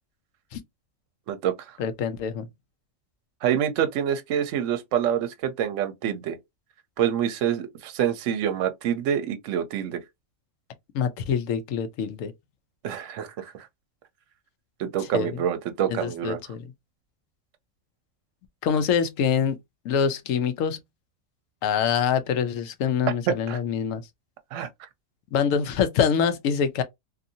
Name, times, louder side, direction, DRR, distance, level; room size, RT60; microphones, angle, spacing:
voice 1, 1.8-2.5 10.9-12.3 15.1-15.3 15.9-16.7 18.6-19.6 19.8-20.8 21.6-24.0 25.3-26.8, left 7 dB, 80° left, 1.0 m, -25 dB
voice 2, 3.4-6.4 7.0-10.0 12.8-13.7 14.8-16.4 23.3-23.6 24.5-24.7, right 9 dB, 70° right, 0.9 m, -26 dB
2.7 x 2.6 x 2.6 m
omnidirectional pair, 1.4 m